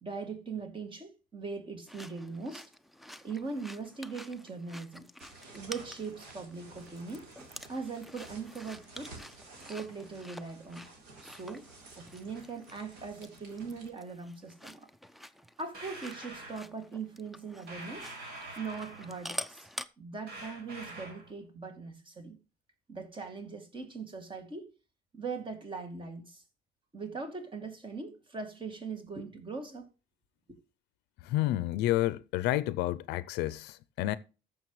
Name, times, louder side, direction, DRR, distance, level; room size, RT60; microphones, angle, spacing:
voice 1, 0.0-2.7 3.2-5.1 5.5-7.3 7.7-9.2 9.7-10.9 11.2-11.7 12.0-14.9 15.6-18.1 18.6-19.7 20.0-22.4 22.9-24.7 25.1-26.4 26.9-29.9, right 4 dB, 30° right, 2.3 m, -40 dB
sound 1, 1.9-19.9, left 1 dB, ahead, 0.5 m, -48 dB
sound 2, 5.2-13.9, right 3 dB, 90° right, 3.9 m, -53 dB
sound 3, 15.7-16.6 17.7-19.2 20.3-21.3, right 2 dB, 70° right, 4.6 m, -45 dB
voice 2, 31.2-34.2, left 15 dB, 90° left, 0.5 m, -30 dB
14.0 x 6.9 x 3.2 m
cardioid pair, 110°, 17 cm